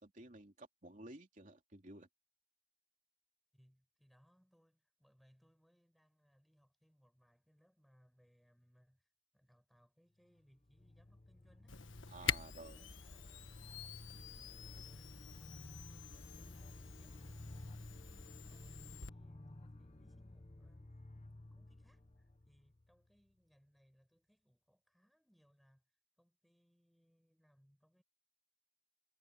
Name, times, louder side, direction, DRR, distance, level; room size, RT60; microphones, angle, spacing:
voice 1, 0.0-2.1 12.1-12.9, right 2 dB, 40° right, 3.0 m, -54 dB
voice 2, 3.5-11.8 12.3-16.7 17.0-28.0, equal, ahead, 6.8 m, -72 dB
sound 1, 10.4-23.2, left 1 dB, 35° left, 1.0 m, -54 dB
Camera, 11.7-19.1, left 8 dB, 85° left, 1.4 m, -46 dB
head